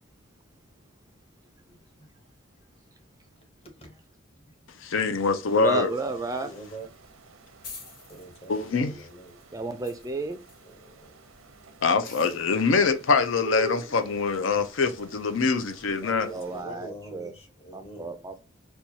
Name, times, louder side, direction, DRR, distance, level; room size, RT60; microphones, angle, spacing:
voice 1, 1.7-2.1 3.6-4.0 6.4-6.9 8.1-9.4 10.7-11.2 16.0-18.1, right 1 dB, 30° left, 0.9 m, -44 dB
voice 2, 4.8-5.9 8.5-8.9 11.8-16.3, left 4 dB, 75° left, 0.5 m, -24 dB
sound 1, 5.4-16.6, equal, 90° right, 0.6 m, -44 dB
voice 3, 5.5-6.5 9.5-10.4 16.3-17.3 17.7-18.4, right 2 dB, 15° right, 0.3 m, -31 dB
sound 2, 6.3-7.1 7.3-7.4 7.6-10.7 12.0-12.6, left 4 dB, 45° left, 1.3 m, -46 dB
4.4 x 2.3 x 2.7 m
head